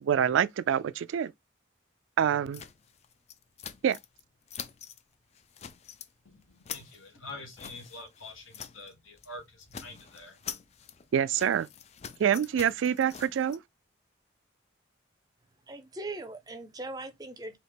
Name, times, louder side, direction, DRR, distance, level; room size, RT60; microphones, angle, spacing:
voice 1, 0.0-1.3 2.2-2.6 3.8-4.0 11.1-11.7 12.2-13.6, right 8 dB, 75° right, 0.3 m, -26 dB
sound 1, 2.5-4.2 4.5-5.0 5.3-6.1 6.4-8.9 9.2-9.3 9.6-13.6, left 8 dB, 30° left, 0.3 m, -45 dB
voice 2, 6.2-10.4, left 2 dB, 85° left, 1.4 m, -46 dB
voice 3, 15.7-17.6, right 2 dB, 20° right, 0.5 m, -40 dB
4.1 x 2.8 x 3.4 m
head